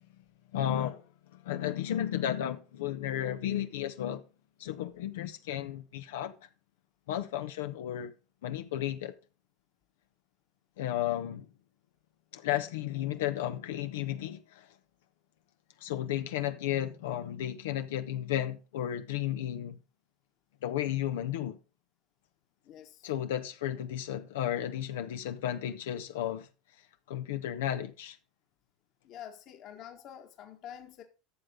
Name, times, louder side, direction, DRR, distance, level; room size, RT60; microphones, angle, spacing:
voice 1, 0.5-1.0 1.3-4.2 4.6-6.3 7.1-8.1 8.4-9.1 10.8-11.5 12.3-14.7 15.8-19.8 20.6-21.6 23.0-26.5 27.1-28.2, left 11 dB, 80° left, 0.9 m, -33 dB
voice 2, 22.6-23.1 29.0-31.0, left 10 dB, 50° left, 1.6 m, -47 dB
12.5 x 6.6 x 3.8 m
supercardioid pair, 100°, 0 cm